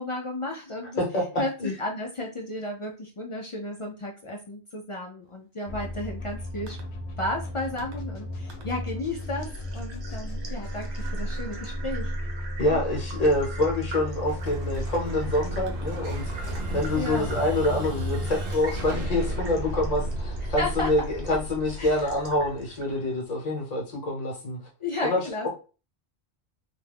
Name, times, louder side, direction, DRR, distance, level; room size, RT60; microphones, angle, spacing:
voice 1, 0.0-1.0 1.4-1.5 1.8-6.8 7.2-12.1 12.7-12.8 17.0-17.3 20.4-20.9 21.8-22.1 24.8-25.5, left 2 dB, 55° left, 0.3 m, -33 dB
voice 2, 1.0-1.7 12.6-16.3 16.7-21.0 21.3-24.6 25.0-25.5, left 1 dB, 40° left, 0.9 m, -26 dB
sound 1, 5.7-23.4, equal, 85° left, 0.9 m, -35 dB
sound 2, 6.7-6.8 7.8-7.9 8.5-8.6 9.0-23.2, right 3 dB, 85° right, 1.0 m, -46 dB
Explosion, 14.1-22.8, right 1 dB, 65° right, 0.8 m, -35 dB
2.5 x 2.2 x 3.4 m
omnidirectional pair, 1.1 m